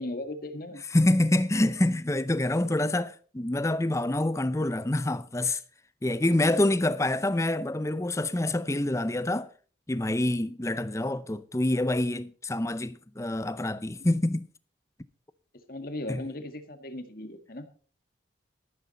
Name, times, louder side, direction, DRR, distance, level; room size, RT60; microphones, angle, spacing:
voice 1, 0.0-0.8 15.7-17.6, left 1 dB, 50° left, 1.7 m, -37 dB
voice 2, 0.9-5.6 6.0-9.5 9.9-14.5 16.1-16.2, left 1 dB, 15° left, 0.6 m, -26 dB
13.0 x 12.0 x 4.1 m
head